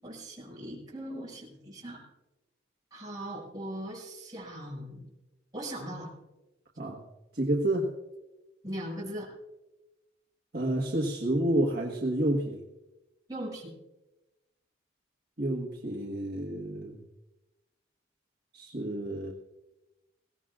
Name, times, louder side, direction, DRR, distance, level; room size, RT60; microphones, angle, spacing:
voice 1, 0.0-2.0 2.9-5.1 5.5-6.1 8.6-9.3 13.3-13.7, right 1 dB, 20° right, -4 dB, 6.3 m, -39 dB
voice 2, 7.3-7.9 10.5-12.6 15.4-17.0 18.5-19.3, right 1 dB, 55° right, -2 dB, 1.5 m, -29 dB
21.5 x 17.0 x 2.5 m, 1.0 s
head